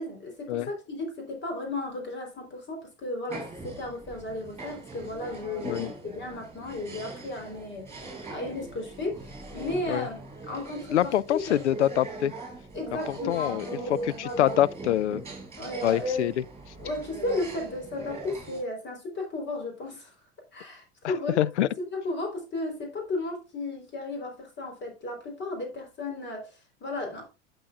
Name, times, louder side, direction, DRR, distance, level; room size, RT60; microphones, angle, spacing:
voice 1, 0.0-11.8 12.7-14.6 15.5-16.1 16.8-20.1 20.5-21.5 21.8-27.3, left 2 dB, 30° left, 3.8 m, -34 dB
sound 1, 3.3-18.6, right 2 dB, 15° right, 5.3 m, -40 dB
voice 2, 10.9-12.3 13.3-13.6 14.2-15.2 15.8-16.4 21.0-21.7, left 12 dB, 75° left, 0.6 m, -25 dB
12.0 x 7.1 x 2.4 m
figure-of-eight pair, 80°, 35 cm